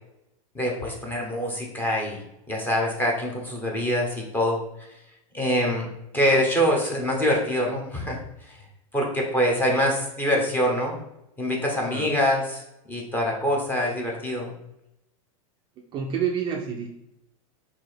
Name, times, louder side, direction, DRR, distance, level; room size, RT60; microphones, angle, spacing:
voice 1, 0.5-2.2 2.5-4.6 5.3-5.9 6.1-8.2 8.9-11.0 11.4-12.6 12.9-14.5, equal, 10° left, -1 dB, 0.9 m, -24 dB
voice 2, 15.9-16.9, right 7 dB, 25° right, 0 dB, 0.4 m, -28 dB
4.1 x 2.8 x 4.5 m, 0.85 s
supercardioid pair, 145°, 18 cm